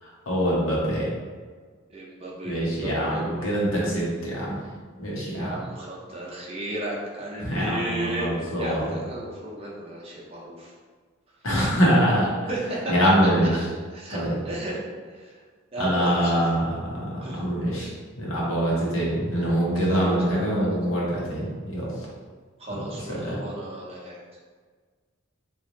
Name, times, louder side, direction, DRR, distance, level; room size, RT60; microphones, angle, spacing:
voice 1, 0.0-1.0 2.4-4.6 5.0-5.6 7.4-8.9 11.4-12.3 12.9-13.5 14.1-14.3 15.8-16.8 17.1-17.9 18.2-21.5 21.7-21.9 22.7-22.8 23.1-23.4, equal, 80° left, -5 dB, 1.1 m, -24 dB
voice 2, 1.9-3.5 5.3-8.3 8.6-10.7 11.6-11.7 12.5-12.9 13.9-14.8 15.2-15.3 15.7-16.5 17.2-17.4 19.8-20.7 22.6-24.2, right 1 dB, 30° right, -4 dB, 0.7 m, -34 dB
3.1 x 2.6 x 3.8 m, 1.5 s
head